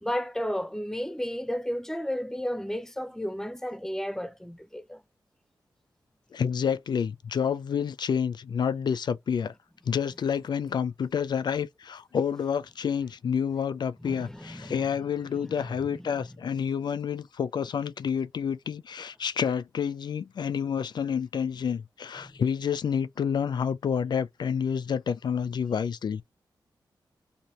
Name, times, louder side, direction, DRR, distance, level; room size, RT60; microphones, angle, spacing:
voice 1, 0.0-5.0 14.0-14.9 15.3-16.1 22.3-22.4, equal, 5° left, 0.5 m, -33 dB
voice 2, 6.3-9.5 9.8-26.2, left 7 dB, 60° left, 0.4 m, -29 dB
2.8 x 2.6 x 3.1 m
cardioid pair, 75°, 8 cm